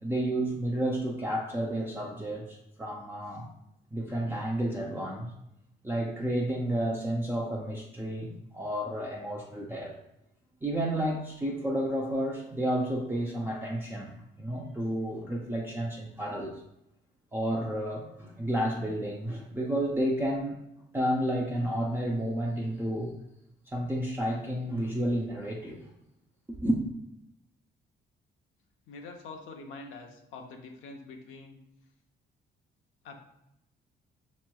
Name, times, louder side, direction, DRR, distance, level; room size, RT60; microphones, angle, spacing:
voice 1, 0.0-3.5 3.9-5.3 5.8-10.0 10.6-16.6 17.3-20.6 20.9-23.1 23.7-25.9 26.5-26.8, right 1 dB, 10° right, -2 dB, 0.5 m, -31 dB
voice 2, 28.9-31.6 33.0-33.2, left 3 dB, 85° left, 3 dB, 0.7 m, -45 dB
5.5 x 3.0 x 2.2 m, 0.83 s
cardioid pair, 90°, 20 cm